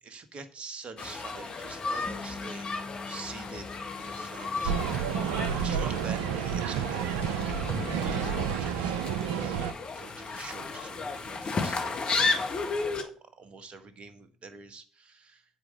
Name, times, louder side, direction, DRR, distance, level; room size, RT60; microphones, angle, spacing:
voice 1, 0.0-3.7 4.0-12.5 12.9-15.4, right 4 dB, 50° right, 10 dB, 1.5 m, -46 dB
sound 1, 1.0-13.0, left 3 dB, 45° left, 1.7 m, -34 dB
Bass guitar, 2.1-8.3, left 3 dB, 10° left, 1.9 m, -47 dB
sound 2, 4.6-9.7, right 8 dB, 80° right, 0.6 m, -30 dB
8.8 x 5.0 x 7.7 m, 0.43 s
hypercardioid pair, 50°, 2 cm